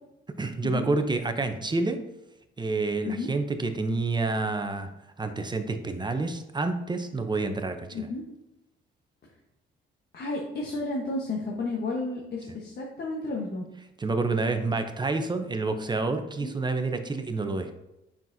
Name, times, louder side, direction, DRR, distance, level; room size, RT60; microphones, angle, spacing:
voice 1, 0.4-2.0 2.6-4.9 5.2-8.1 14.0-17.7, right 3 dB, 20° right, 7 dB, 0.7 m, -28 dB
voice 2, 7.9-8.3 10.1-13.7 16.4-16.6, left 2 dB, 55° left, -2 dB, 1.2 m, -32 dB
7.1 x 5.9 x 2.7 m, 0.91 s
cardioid pair, 90°, 20 cm